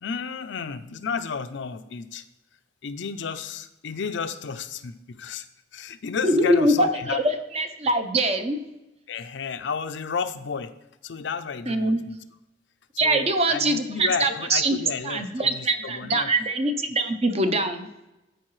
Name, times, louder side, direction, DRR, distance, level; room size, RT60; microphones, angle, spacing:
voice 1, 0.0-2.2 2.8-5.5 5.7-7.2 9.1-10.7 11.0-12.2 12.9-16.3, left 5 dB, 65° left, 10 dB, 0.5 m, -32 dB
voice 2, 6.2-8.6 11.7-12.0 13.0-14.8 15.0-17.9, right 1 dB, 35° right, 7 dB, 0.7 m, -23 dB
13.5 x 4.6 x 3.1 m, 0.95 s
head